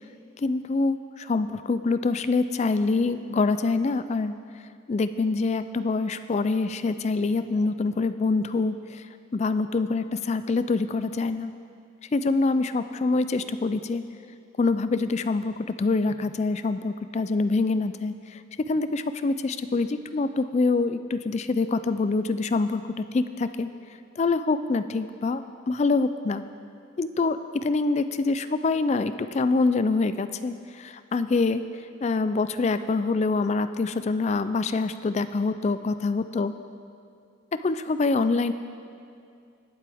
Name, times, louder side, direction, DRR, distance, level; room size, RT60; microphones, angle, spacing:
voice 1, 0.4-4.3 4.9-9.0 9.3-11.5 12.1-14.0 14.6-18.4 18.7-23.7 24.2-26.4 27.0-31.6 32.0-36.5 37.5-38.5, left 3 dB, 35° left, 12 dB, 0.3 m, -25 dB
19.0 x 7.6 x 3.5 m, 2.4 s
head